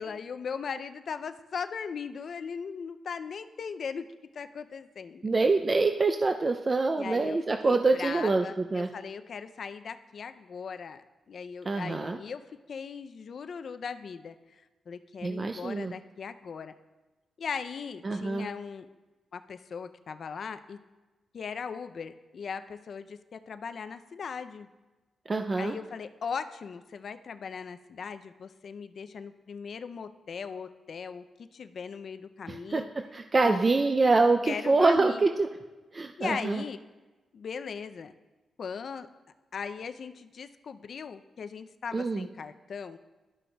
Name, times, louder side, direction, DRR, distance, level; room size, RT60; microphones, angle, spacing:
voice 1, 0.0-4.1 4.3-5.3 7.0-7.4 7.6-16.7 17.4-18.9 19.3-20.8 21.3-24.7 25.6-31.2 31.5-32.9 33.4-33.6 34.4-35.2 36.2-36.8 37.3-38.1 38.6-39.1 39.5-43.0, left 6 dB, 60° left, 10 dB, 0.4 m, -38 dB
voice 2, 5.2-8.9 11.7-12.2 15.2-15.9 18.0-18.5 25.3-25.8 32.5-32.8 33.1-35.5 35.9-36.6 41.9-42.3, right 3 dB, 35° right, 5 dB, 0.3 m, -25 dB
13.0 x 6.2 x 2.2 m, 1.2 s
cardioid pair, 105°, 0 cm